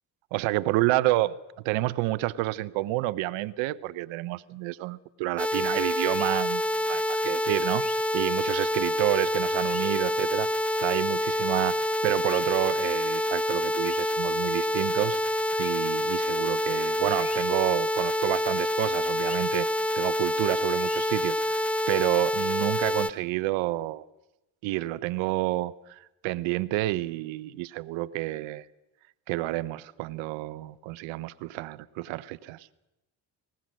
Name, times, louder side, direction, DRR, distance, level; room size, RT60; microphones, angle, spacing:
voice 1, 0.3-1.4 1.6-10.5 10.8-19.7 19.9-24.0 24.6-28.6 29.3-32.7, right 17 dB, 80° right, 18 dB, 0.8 m, -29 dB
sound 1, 5.4-23.1, left 1 dB, 5° left, 0.7 m, -27 dB
sound 2, 6.1-6.3 7.7-8.0 9.5-9.8 12.2-12.4 13.8-14.1 15.5-15.7 17.2-17.4 19.2-19.4 20.8-21.1, left 4 dB, 35° left, 2.7 m, -43 dB
20.5 x 20.0 x 6.3 m, 0.97 s
supercardioid pair, 60°, 46 cm